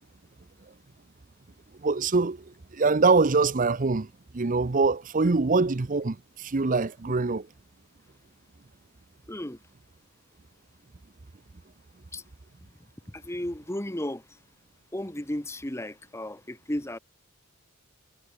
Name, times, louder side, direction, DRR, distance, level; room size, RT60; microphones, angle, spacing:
voice 1, 1.8-2.4 2.7-4.1 4.3-7.5, right 3 dB, 40° right, 0.6 m, -24 dB
voice 2, 9.3-9.6 12.1-12.2 13.1-14.2 14.9-17.0, left 1 dB, 15° left, 1.3 m, -34 dB
head